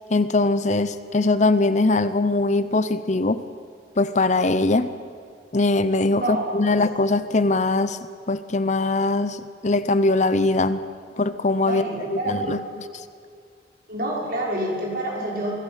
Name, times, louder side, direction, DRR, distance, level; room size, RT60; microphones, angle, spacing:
voice 1, 0.1-3.4 4.0-4.9 5.5-8.0 8.3-10.8 11.2-11.8 12.1-12.6, left 2 dB, 40° left, 13 dB, 0.7 m, -21 dB
voice 2, 6.1-6.8 11.6-12.6 13.9-15.5, right 1 dB, 55° right, -2 dB, 5.9 m, -28 dB
24.0 x 16.5 x 8.2 m, 2.3 s
head